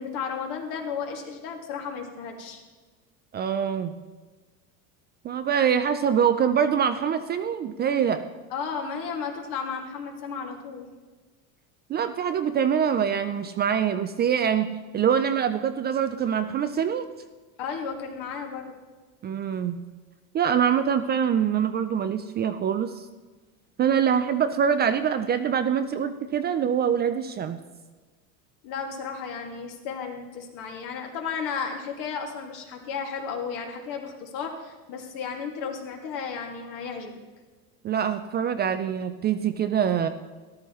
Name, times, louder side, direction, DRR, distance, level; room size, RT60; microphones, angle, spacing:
voice 1, 0.0-2.6 8.5-10.9 17.6-18.7 28.6-37.1, left 6 dB, 65° left, 2 dB, 2.2 m, -33 dB
voice 2, 3.3-3.9 5.2-8.2 11.9-17.1 19.2-19.8 20.3-23.1 23.8-27.6 37.8-40.1, right 8 dB, 25° right, 9 dB, 0.4 m, -24 dB
13.5 x 12.0 x 3.1 m, 1.3 s
supercardioid pair, 130°, 40 cm